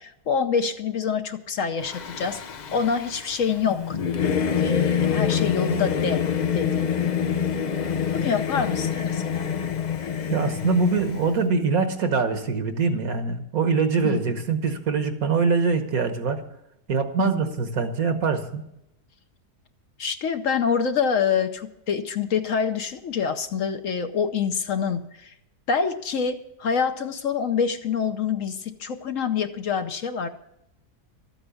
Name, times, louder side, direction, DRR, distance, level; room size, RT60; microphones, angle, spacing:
voice 1, 0.0-2.4 2.7-4.0 4.6-6.2 6.5-6.9 8.1-9.5 14.0-14.2 17.2-17.6 20.0-25.3 25.7-30.3, left 6 dB, 60° left, 8 dB, 1.1 m, -26 dB
Singing / Musical instrument, 1.8-11.4, left 7 dB, 85° left, 0.4 m, -26 dB
voice 2, 10.3-16.4 16.9-18.6, right 4 dB, 65° right, 8 dB, 1.6 m, -23 dB
13.5 x 8.9 x 7.0 m, 0.82 s
omnidirectional pair, 1.7 m